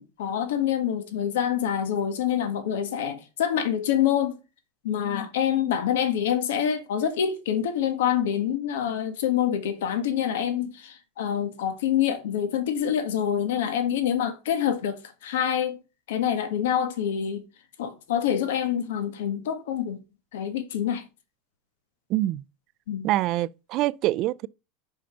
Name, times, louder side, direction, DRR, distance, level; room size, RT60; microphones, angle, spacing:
voice 1, 0.0-4.4 4.8-15.8 16.1-17.4 17.8-20.0 20.3-21.0 22.9-23.1, left 9 dB, 90° left, 1.4 m, -26 dB
voice 2, 22.1-22.4 23.0-24.5, right 15 dB, 40° right, 0.3 m, -25 dB
5.7 x 5.1 x 6.7 m
supercardioid pair, 160°, 0 cm